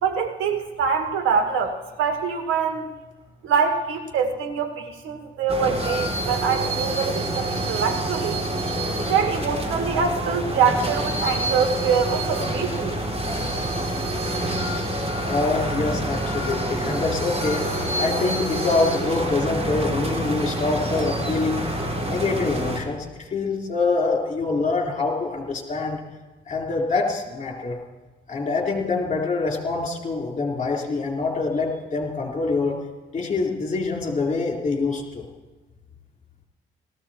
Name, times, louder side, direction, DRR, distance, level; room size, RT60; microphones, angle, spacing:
voice 1, 0.0-2.9 3.4-8.4 9.1-13.0, right 6 dB, 90° right, 6 dB, 1.6 m, -24 dB
sound 1, 5.5-22.8, right 1 dB, 30° right, 3.2 m, -27 dB
voice 2, 15.2-21.6 22.1-26.0 26.5-27.8 28.3-32.8 33.1-35.3, left 3 dB, 35° left, 0 dB, 3.9 m, -25 dB
18.0 x 14.5 x 4.4 m, 1.2 s
cardioid pair, 90°, 20 cm